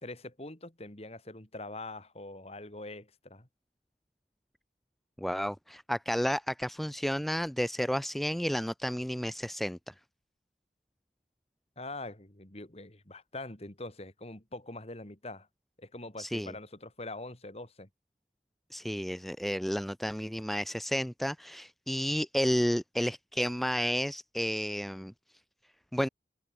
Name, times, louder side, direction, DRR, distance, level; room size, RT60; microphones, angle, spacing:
voice 1, 0.0-3.5 11.8-15.5 15.8-17.9, left 2 dB, 35° left, 2.7 m, -43 dB
voice 2, 5.2-9.9 16.2-16.5 18.7-25.1 25.9-26.1, equal, ahead, 0.4 m, -31 dB
head